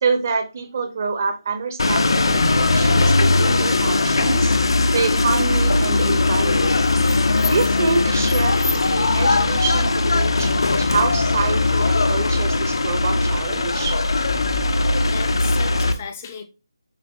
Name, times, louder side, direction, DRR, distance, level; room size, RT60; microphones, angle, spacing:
voice 1, 0.0-4.5 4.9-6.8 7.5-8.6 8.9-14.0, right 4 dB, 30° right, 0.6 m, -26 dB
sound 1, 1.8-15.9, left 2 dB, 65° left, 0.6 m, -19 dB
voice 2, 15.1-16.4, left 6 dB, 20° left, 0.5 m, -35 dB
7.0 x 2.5 x 2.7 m
figure-of-eight pair, 170°, 3 cm